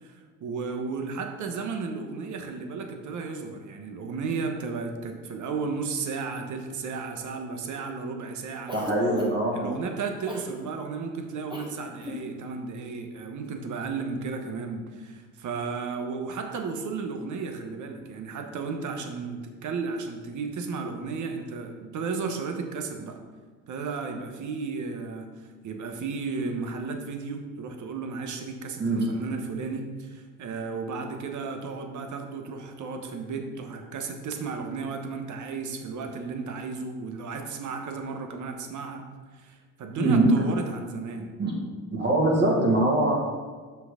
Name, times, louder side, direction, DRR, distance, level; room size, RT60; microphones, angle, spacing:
voice 1, 0.0-8.7 9.5-23.2 23.7-39.0 39.3-41.3, right 4 dB, 55° right, 5 dB, 1.2 m, -34 dB
Cough, 8.7-9.5 10.3-10.5 11.5-11.7 12.0-12.2, left 1 dB, 15° right, 1.7 m, -36 dB
voice 2, 8.7-9.7 28.8-29.0 40.0-40.3 41.4-41.5 41.9-43.1, right 2 dB, 30° right, -3 dB, 2.2 m, -23 dB
6.1 x 6.0 x 5.0 m, 1.5 s
cardioid pair, 105°, 35 cm